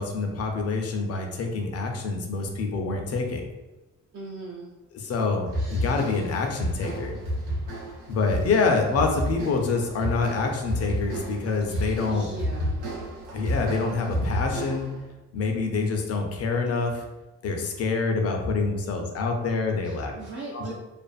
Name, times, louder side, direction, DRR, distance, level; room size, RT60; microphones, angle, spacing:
voice 1, 0.0-3.4 4.9-7.1 8.1-12.3 13.3-14.9 15.3-17.0 17.4-20.1 20.5-20.7, left 4 dB, 55° left, 3 dB, 0.5 m, -26 dB
voice 2, 4.1-4.7 11.7-12.8 19.8-20.7, right 3 dB, 40° right, -2 dB, 0.4 m, -39 dB
sound 1, 5.5-15.0, equal, 85° right, 0.7 m, -31 dB
2.5 x 2.4 x 2.3 m, 1.1 s
cardioid pair, 90°, 30 cm